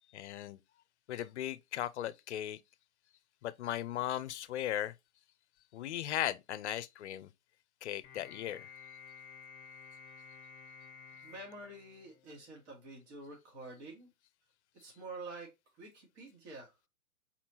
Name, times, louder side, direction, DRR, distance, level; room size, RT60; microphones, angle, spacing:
voice 1, 0.1-0.6 1.1-2.6 3.4-4.9 5.7-7.3 7.8-8.7, left 12 dB, 55° left, 0.5 m, -37 dB
sound 1, 8.0-12.5, left 6 dB, 20° left, 0.8 m, -53 dB
voice 2, 11.2-14.1 14.8-15.5 15.8-16.7, right 2 dB, 55° right, 2.2 m, -48 dB
4.3 x 4.1 x 2.9 m
hypercardioid pair, 135°, 43 cm